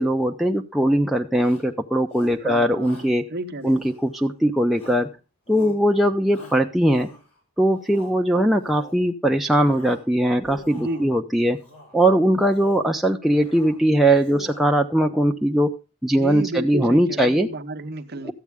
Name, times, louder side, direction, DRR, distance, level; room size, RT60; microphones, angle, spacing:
voice 1, 0.0-3.2 3.6-5.1 5.5-7.1 7.6-11.6 11.9-15.7 16.0-17.5 18.2-18.3, right 1 dB, ahead, 0.5 m, -20 dB
Shout, 1.4-1.7 2.1-2.5 2.8-3.2 3.6-4.3 4.7-5.1 5.5-5.8 6.3-7.4 7.8-8.2 8.6-9.1 9.5-10.1 10.4-11.1 11.6-12.0 12.4-12.9 13.2-13.8 14.1-14.8, left 1 dB, 90° left, 3.4 m, -44 dB
voice 2, 2.4-3.8 10.8-11.1 16.1-18.3, right 1 dB, 45° right, 0.8 m, -32 dB
13.5 x 8.4 x 3.5 m
head